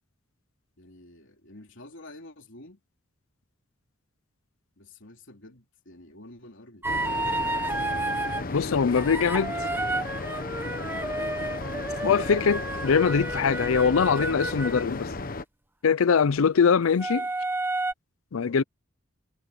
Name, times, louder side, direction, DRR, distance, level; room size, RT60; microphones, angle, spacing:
voice 1, 0.8-2.8 4.8-7.2 17.1-17.2 18.3-18.6, left 1 dB, 65° left, 3.6 m, -49 dB
sound 1, 6.8-15.4, left 3 dB, 45° left, 1.1 m, -35 dB
sound 2, 6.8-8.4 9.0-14.9 17.0-17.9, right 2 dB, 10° right, 0.9 m, -31 dB
voice 2, 8.5-9.5 12.0-15.1 15.8-17.3 18.3-18.6, left 6 dB, 80° left, 0.5 m, -22 dB
head